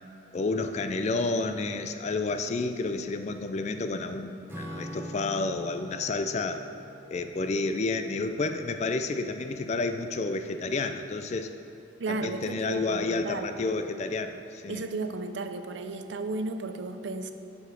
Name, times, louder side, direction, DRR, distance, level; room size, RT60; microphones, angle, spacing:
voice 1, 0.3-6.6 7.1-11.5 12.1-14.8, left 3 dB, 35° left, 8 dB, 0.3 m, -30 dB
Acoustic guitar / Strum, 4.5-9.3, equal, 10° right, 0.9 m, -44 dB
voice 2, 12.0-13.5 14.7-17.3, right 3 dB, 70° right, 8 dB, 0.5 m, -34 dB
8.1 x 5.0 x 6.2 m, 2.7 s
head